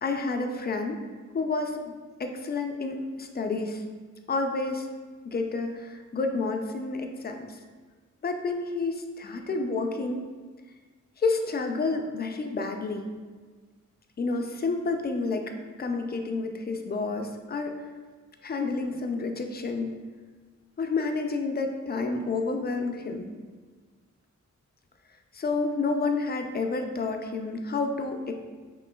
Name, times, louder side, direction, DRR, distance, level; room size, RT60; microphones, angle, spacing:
voice 1, 0.0-1.0 1.3-3.8 4.3-4.9 5.3-7.6 8.2-10.3 11.2-13.1 14.2-15.4 15.8-17.8 18.4-19.9 20.8-23.3 25.3-28.3, left 3 dB, 35° left, 5 dB, 0.4 m, -29 dB
5.0 x 3.1 x 2.3 m, 1.4 s
wide cardioid pair, 110°, 30 cm